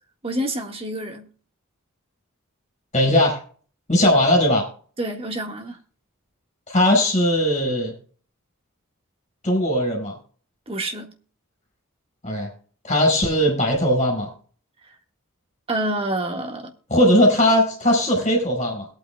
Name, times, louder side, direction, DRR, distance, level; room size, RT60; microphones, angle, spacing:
voice 1, 0.2-1.3 5.0-5.8 10.7-11.1 15.7-16.7, right 1 dB, 25° right, 1.7 m, -27 dB
voice 2, 2.9-3.4 3.9-4.7 6.7-7.9 9.4-10.1 12.2-12.5 12.8-14.3 16.9-18.9, left 1 dB, 35° left, 5.1 m, -19 dB
21.5 x 8.9 x 2.3 m
head